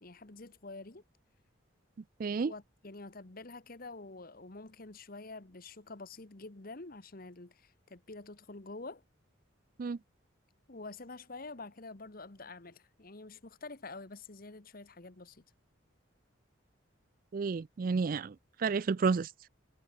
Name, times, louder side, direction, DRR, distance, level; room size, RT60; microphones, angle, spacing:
voice 1, 0.0-1.0 2.4-9.0 10.7-15.4, left 3 dB, 45° left, 1.3 m, -47 dB
voice 2, 2.2-2.5 9.8-10.0 17.3-18.3 18.6-19.3, right 5 dB, 45° right, 0.4 m, -30 dB
head